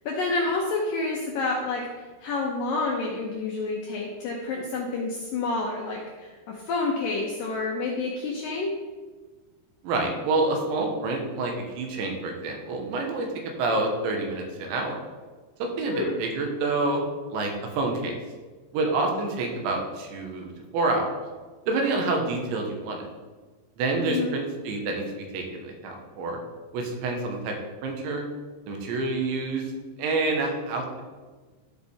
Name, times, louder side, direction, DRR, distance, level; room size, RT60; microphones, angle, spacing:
voice 1, 0.1-1.9 2.2-8.7 15.9-16.2 24.0-24.4, left 3 dB, 75° left, -2 dB, 2.0 m, -29 dB
voice 2, 9.8-15.0 15.6-17.0 17.3-18.1 18.7-21.2 21.7-23.0 23.8-26.4 26.7-27.6 27.8-28.2 28.7-29.7 30.0-31.0, right 3 dB, 90° right, 2 dB, 3.5 m, -28 dB
13.0 x 5.3 x 3.4 m, 1.3 s
omnidirectional pair, 5.1 m